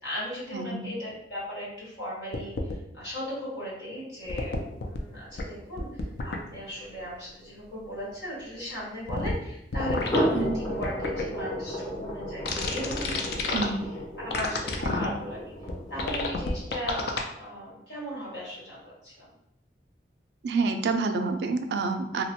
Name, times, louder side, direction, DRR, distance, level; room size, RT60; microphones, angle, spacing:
voice 1, 0.0-2.5 2.9-5.9 6.2-13.8 14.2-15.5 15.9-17.0 17.4-19.3, equal, 80° left, -7 dB, 1.4 m, -37 dB
voice 2, 0.5-0.9 10.3-10.5 13.5-13.7 14.8-15.1 20.4-22.2, right 4 dB, 75° right, 6 dB, 0.3 m, -28 dB
sound 1, 2.3-2.7 4.3-5.0 5.4-5.5 5.8-6.4 9.1-9.3 9.7-10.2 10.8-11.2 12.5-13.7 14.3-15.1 15.7-15.8 16.0-17.2, left 3 dB, 65° left, 0.4 m, -29 dB
sound 2, 4.2-8.8 9.9-16.7, equal, 25° left, 0.6 m, -34 dB
2.8 x 2.1 x 2.8 m, 0.79 s
head